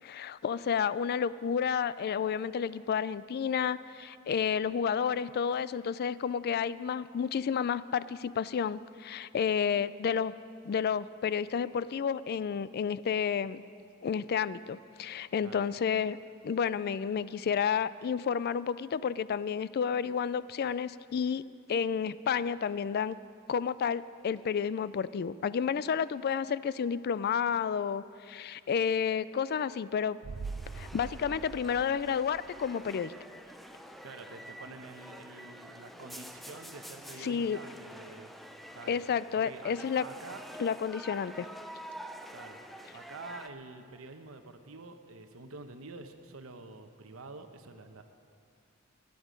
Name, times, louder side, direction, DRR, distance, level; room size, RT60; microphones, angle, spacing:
voice 1, 0.0-10.3 10.6-13.6 14.0-16.2 16.4-21.4 21.7-23.2 23.5-30.2 30.7-33.1 37.2-37.6 38.9-40.1 40.6-41.5, left 7 dB, 50° left, 17 dB, 0.3 m, -31 dB
sound 1, 30.2-43.5, equal, ahead, 0.5 m, -48 dB
sound 2, 30.2-32.9 33.2-33.3, right 4 dB, 50° right, 0.4 m, -43 dB
voice 2, 34.0-38.3 38.7-39.0 39.3-40.4 42.3-42.6 42.9-48.0, right 3 dB, 75° right, 7 dB, 1.0 m, -47 dB
20.5 x 9.5 x 5.1 m, 2.4 s
head